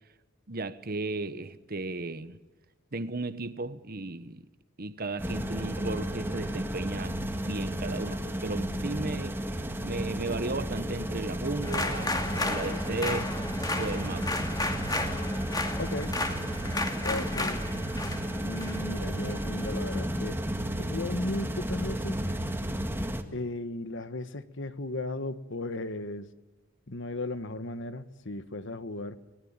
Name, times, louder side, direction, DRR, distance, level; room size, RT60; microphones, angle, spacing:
voice 1, 0.5-2.4 2.9-4.5 4.8-13.3 13.7-14.4, right 2 dB, 45° right, 1.2 m, -35 dB
sound 1, 5.2-23.2, right 1 dB, 10° right, 1.9 m, -33 dB
sound 2, 11.6-20.0, left 2 dB, 20° left, 2.3 m, -34 dB
voice 2, 15.8-16.1 17.0-17.6 18.4-20.4 20.8-22.2 23.3-26.3 26.9-29.2, left 2 dB, 60° left, 1.3 m, -36 dB
25.0 x 19.5 x 8.9 m
head